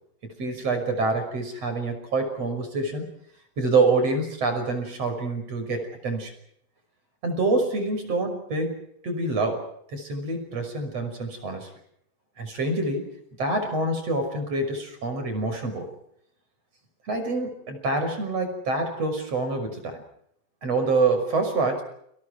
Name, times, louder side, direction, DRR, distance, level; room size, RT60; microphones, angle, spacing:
voice 1, 0.4-3.1 3.6-6.3 7.2-8.8 9.0-9.7 9.9-11.7 12.4-13.0 13.4-15.9 17.1-20.0 20.6-21.8, right 3 dB, 40° right, 7 dB, 6.8 m, -26 dB
29.5 x 27.0 x 4.8 m, 0.72 s
omnidirectional pair, 4.5 m